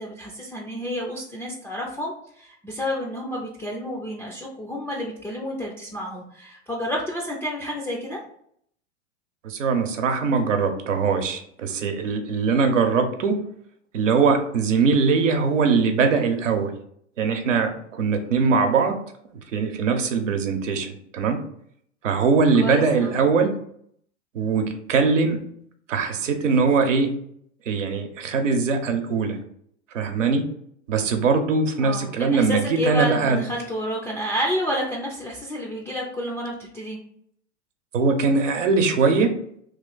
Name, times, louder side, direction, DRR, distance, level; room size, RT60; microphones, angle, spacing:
voice 1, 0.0-8.2 22.6-23.2 31.8-37.0, equal, 5° left, -2 dB, 0.3 m, -30 dB
voice 2, 9.4-13.4 13.9-16.7 17.2-19.0 19.5-21.4 22.0-23.6 24.3-25.4 25.9-27.1 27.7-29.4 29.9-30.5 30.9-33.4 37.9-39.3, right 4 dB, 80° right, 5 dB, 0.8 m, -21 dB
3.1 x 2.5 x 3.8 m, 0.67 s
hypercardioid pair, 105°, 37 cm